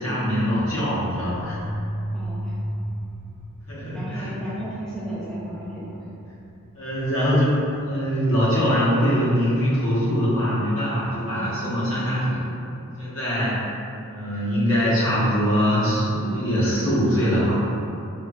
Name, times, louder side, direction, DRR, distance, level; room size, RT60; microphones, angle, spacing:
voice 1, 0.0-1.6 3.7-4.3 6.7-12.4 13.0-13.6 14.1-17.6, equal, 60° left, -9 dB, 0.9 m, -22 dB
sound 1, 0.9-9.1, equal, 75° right, 0.5 m, -35 dB
voice 2, 2.1-2.5 3.9-6.1, equal, 5° left, -10 dB, 0.3 m, -34 dB
4.2 x 2.2 x 2.3 m, 2.7 s
head